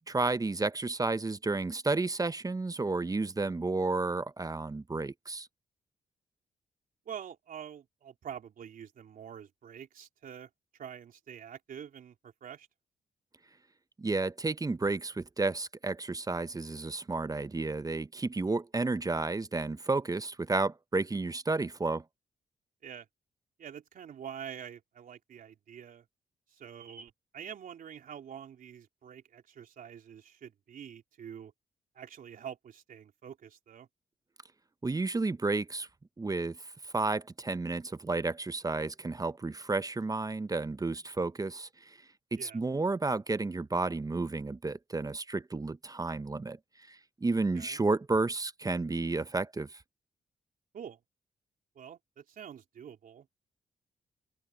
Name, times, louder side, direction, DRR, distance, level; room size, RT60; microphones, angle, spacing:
voice 1, 0.1-5.5 14.0-22.0 34.8-35.9 36.2-36.6 36.9-42.0 42.3-46.6 46.9-49.8, right 3 dB, 25° right, 0.8 m, -32 dB
voice 2, 7.1-12.7 22.8-23.1 23.6-26.0 26.5-31.5 32.0-33.9 42.4-42.6 47.5-47.8 50.7-51.0 51.8-53.4, right 8 dB, 70° right, 3.5 m, -46 dB
open air
supercardioid pair, 55°, 15 cm